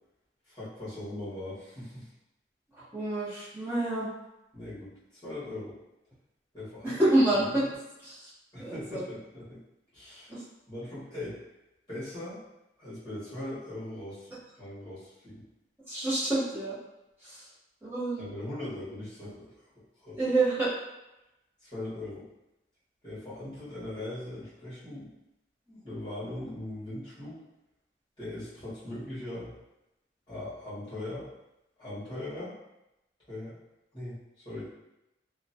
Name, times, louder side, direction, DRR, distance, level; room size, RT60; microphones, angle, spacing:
voice 1, 0.5-2.1 4.5-4.9 5.2-5.8 6.5-7.0 8.5-9.6 9.9-10.3 10.7-11.4 11.9-12.4 12.8-15.4 18.2-19.5 20.0-20.2 21.6-22.2 23.0-25.1 25.7-27.4 28.2-29.5 30.3-31.3 31.8-32.5 33.3-33.6 33.9-34.2 34.4-34.7, left 1 dB, 25° left, -11 dB, 1.4 m, -40 dB
voice 2, 2.7-4.1 6.8-7.7 8.0-8.3 8.6-9.0 10.3-10.4 15.9-16.8 17.2-17.5 17.8-18.2 20.1-20.7, right 2 dB, 10° right, -10 dB, 0.9 m, -28 dB
2.9 x 2.1 x 2.7 m, 0.93 s
head